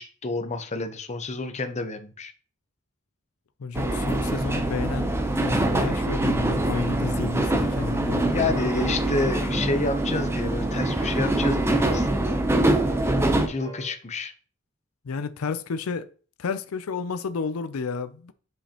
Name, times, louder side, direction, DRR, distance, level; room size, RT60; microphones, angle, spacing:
voice 1, 0.0-2.3 8.3-12.1 13.5-14.3, left 3 dB, 35° left, 0.7 m, -29 dB
voice 2, 3.6-8.6 15.0-16.1 16.4-18.3, left 5 dB, 90° left, 0.5 m, -31 dB
sound 1, 3.7-13.5, right 1 dB, 10° right, 0.6 m, -24 dB
sound 2, 7.4-13.9, equal, 75° right, 2.5 m, -47 dB
7.7 x 5.1 x 2.9 m
head